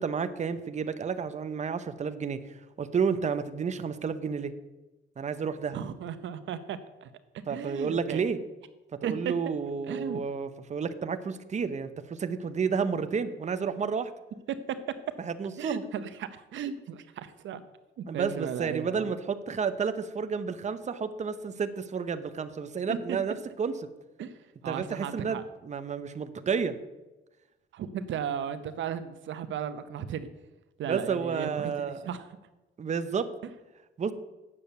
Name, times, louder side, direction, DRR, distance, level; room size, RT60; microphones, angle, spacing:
voice 1, 0.0-4.5 5.2-5.8 7.5-8.4 8.9-14.1 15.2-15.8 18.1-23.8 24.6-26.8 30.9-32.1 32.8-33.3 34.0-34.1, right 6 dB, 35° right, 10 dB, 0.8 m, -31 dB
voice 2, 5.7-7.1 7.3-8.2 9.0-9.1 9.9-10.2 14.5-14.6 15.6-17.6 18.0-19.1 22.9-23.2 24.2-24.3 24.6-25.4 27.7-30.3 30.8-32.3, right 8 dB, 70° right, 11 dB, 0.8 m, -35 dB
8.5 x 7.0 x 7.9 m, 1.1 s
cardioid pair, 90°, 20 cm